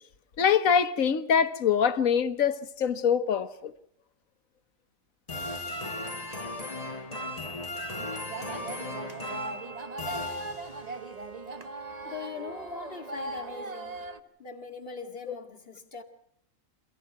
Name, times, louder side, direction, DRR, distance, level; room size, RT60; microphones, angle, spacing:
voice 1, 0.4-3.7 15.3-15.4, left 7 dB, 85° left, 1.5 m, -24 dB
sound 1, 5.3-11.0, left 1 dB, 30° left, 2.1 m, -36 dB
sound 2, 8.0-14.2, right 3 dB, 35° right, 1.1 m, -39 dB
voice 2, 12.0-14.0 14.4-16.0, left 5 dB, 45° left, 2.3 m, -41 dB
27.5 x 16.0 x 6.0 m
omnidirectional pair, 1.4 m